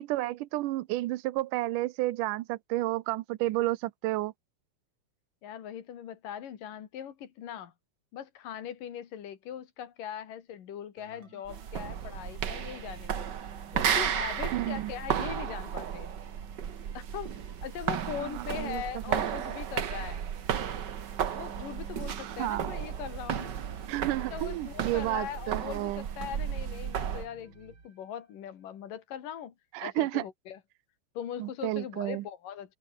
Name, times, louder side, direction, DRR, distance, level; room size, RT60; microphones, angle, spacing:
voice 1, 0.0-4.3 14.5-14.9 18.2-19.3 22.2-22.7 23.9-26.1 29.7-30.2 31.4-32.3, right 17 dB, 80° right, 2.4 m, -31 dB
voice 2, 5.4-7.7 8.1-13.3 13.7-16.1 16.9-17.3 17.6-20.2 21.3-23.5 24.3-29.5 29.8-30.6 31.2-32.8, left 9 dB, 85° left, 3.8 m, -40 dB
sound 1, 11.0-28.5, right 4 dB, 35° right, 4.2 m, -56 dB
sound 2, 11.5-27.3, right 8 dB, 55° right, 1.2 m, -34 dB
omnidirectional pair, 3.7 m